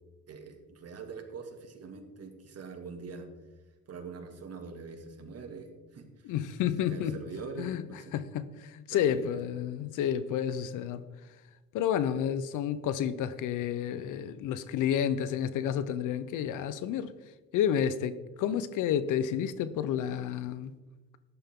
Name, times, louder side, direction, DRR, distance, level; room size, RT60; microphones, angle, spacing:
voice 1, 0.3-3.3 3.9-6.3 6.9-8.2 8.9-9.3, right 4 dB, 55° right, 4 dB, 2.3 m, -43 dB
voice 2, 6.2-7.2 7.6-7.8 8.1-11.0 11.7-17.1 17.5-20.7, left 9 dB, 90° left, 14 dB, 0.8 m, -30 dB
13.5 x 11.0 x 3.8 m, 1.2 s
cardioid pair, 90°, 30 cm